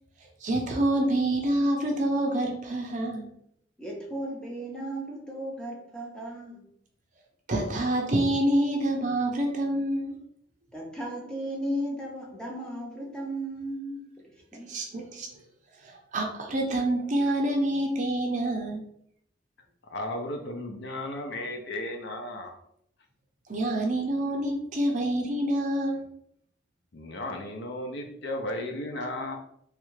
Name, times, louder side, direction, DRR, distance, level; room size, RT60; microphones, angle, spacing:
voice 1, 0.4-3.3 7.5-10.2 14.7-15.3 15.8-18.8 23.5-26.0, right 1 dB, 40° right, 1 dB, 0.5 m, -27 dB
voice 2, 3.8-6.7 10.7-14.0 14.5-14.8 15.1-15.3, right 1 dB, 5° left, -2 dB, 0.7 m, -35 dB
voice 3, 19.9-22.6 26.9-29.4, left 1 dB, 60° left, 3 dB, 0.5 m, -34 dB
3.2 x 2.4 x 3.1 m, 0.70 s
head